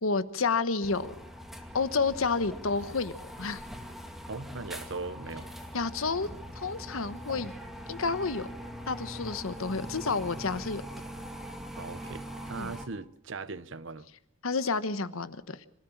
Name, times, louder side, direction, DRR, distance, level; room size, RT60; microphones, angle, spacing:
voice 1, 0.0-1.1 1.7-3.1 3.4-3.6 5.7-6.3 6.5-7.5 7.9-8.5 8.9-10.8 12.6-12.7 14.4-15.6, left 4 dB, 80° left, 1.2 m, -30 dB
sound 1, 0.8-12.9, equal, ahead, 2.2 m, -42 dB
voice 2, 4.3-5.5 11.8-14.1, right 3 dB, 65° right, 0.9 m, -39 dB
26.0 x 14.0 x 7.3 m
head